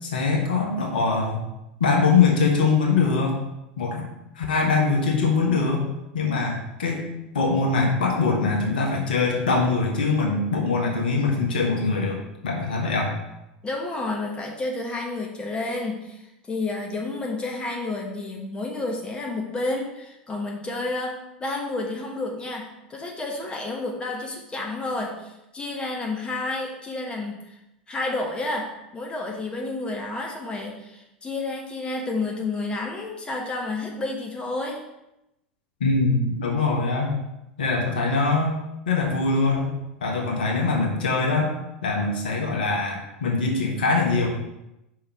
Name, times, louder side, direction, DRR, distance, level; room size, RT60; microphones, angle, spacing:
voice 1, 0.0-1.4 1.8-3.4 3.8-4.1 4.3-5.8 6.1-7.1 7.3-13.1 35.8-37.1 37.6-38.6 38.8-39.7 40.0-41.5 41.8-44.3, left 4 dB, 70° left, -1 dB, 1.6 m, -22 dB
voice 2, 13.6-27.6 27.9-34.8, left 2 dB, 20° left, 0 dB, 1.3 m, -30 dB
5.4 x 4.7 x 5.7 m, 0.90 s
figure-of-eight pair, 80°, 5 cm